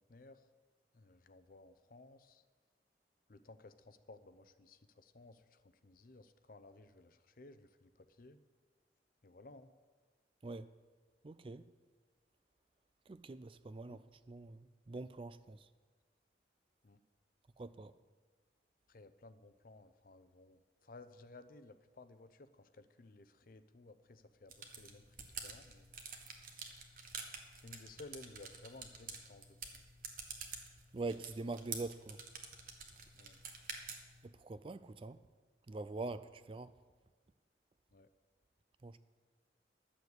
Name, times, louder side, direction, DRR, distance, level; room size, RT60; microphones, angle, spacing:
voice 1, 0.1-0.4 0.9-2.4 3.3-8.4 9.2-9.7 13.9-14.0 16.8-17.0 18.9-25.1 25.4-25.9 27.6-29.6 33.2-33.4 37.9-38.1, left 2 dB, 55° left, 0.6 m, -57 dB
voice 2, 11.2-11.6 13.1-14.0 14.3-15.6 17.6-17.9 30.9-32.2 34.2-35.2 35.7-36.7 38.8-39.0, right 3 dB, 30° right, 0.4 m, -44 dB
sound 1, 24.5-34.3, right 5 dB, 50° right, 1.3 m, -49 dB
11.5 x 7.1 x 8.0 m
head